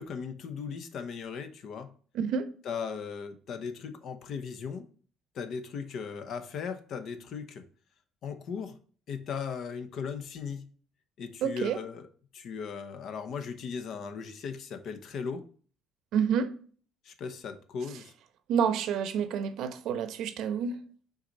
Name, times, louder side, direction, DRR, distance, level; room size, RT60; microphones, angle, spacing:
voice 1, 0.0-1.9 2.6-4.9 5.3-7.6 8.2-8.8 9.1-10.6 11.2-12.1 12.3-15.4 17.0-18.1, left 6 dB, 60° left, 1.0 m, -37 dB
voice 2, 2.1-2.5 11.4-11.8 16.1-16.5 18.5-20.8, right 7 dB, 70° right, 0.9 m, -28 dB
6.3 x 4.1 x 4.1 m
cardioid pair, 115°, 0 cm